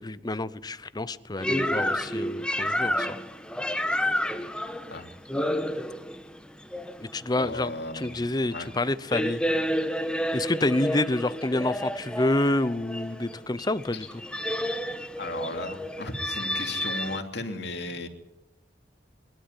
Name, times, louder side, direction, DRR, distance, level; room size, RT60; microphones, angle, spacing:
voice 1, 0.0-3.1 7.0-9.4 10.3-14.1, left 2 dB, 25° left, 15 dB, 0.7 m, -28 dB
sound 1, 1.4-17.2, equal, 5° left, 1.2 m, -30 dB
voice 2, 7.4-8.1 8.5-8.7 15.2-18.1, left 2 dB, 65° left, 4 dB, 2.7 m, -35 dB
25.0 x 12.5 x 9.7 m, 0.92 s
head